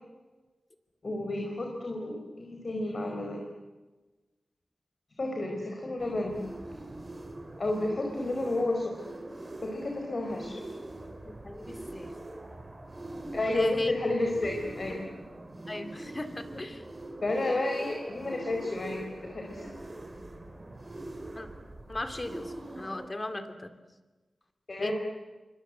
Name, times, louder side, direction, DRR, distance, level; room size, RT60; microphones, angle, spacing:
voice 1, 1.0-3.4 5.2-6.4 7.6-9.0 9.6-10.6 13.3-15.0 17.2-19.7 24.7-24.9, left 2 dB, 50° left, 2 dB, 4.8 m, -31 dB
sound 1, 6.0-23.1, right 1 dB, 25° right, 3.9 m, -43 dB
voice 2, 11.3-12.1 13.5-13.9 14.9-15.0 15.7-16.8 21.4-21.5 21.9-23.7 24.8-24.9, left 2 dB, 30° left, 8 dB, 2.6 m, -36 dB
28.0 x 25.0 x 8.0 m, 1.2 s
wide cardioid pair, 85°, 0 cm